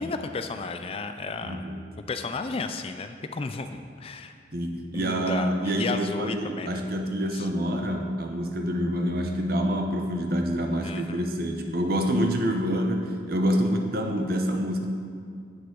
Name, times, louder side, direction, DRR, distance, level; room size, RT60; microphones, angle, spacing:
voice 1, 0.0-1.6 2.1-4.3 4.9-6.8 7.3-7.5 10.8-11.4, left 4 dB, 30° left, 8 dB, 0.4 m, -33 dB
voice 2, 1.4-1.8 4.5-14.9, equal, 55° right, 4 dB, 0.9 m, -27 dB
9.5 x 7.8 x 3.8 m, 2.3 s
head